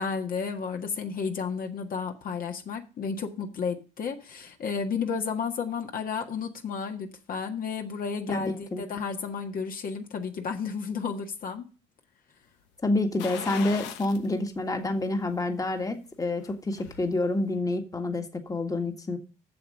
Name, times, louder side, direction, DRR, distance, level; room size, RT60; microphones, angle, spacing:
voice 1, 0.0-11.7, left 5 dB, 50° left, 1.6 m, -32 dB
voice 2, 8.3-8.8 12.8-19.2, left 2 dB, 20° left, 1.7 m, -28 dB
sound 1, 13.2-14.3 14.7-14.8 16.3-17.1 17.4-17.5, left 10 dB, 80° left, 1.1 m, -39 dB
7.9 x 6.9 x 6.6 m
supercardioid pair, 70°, 18 cm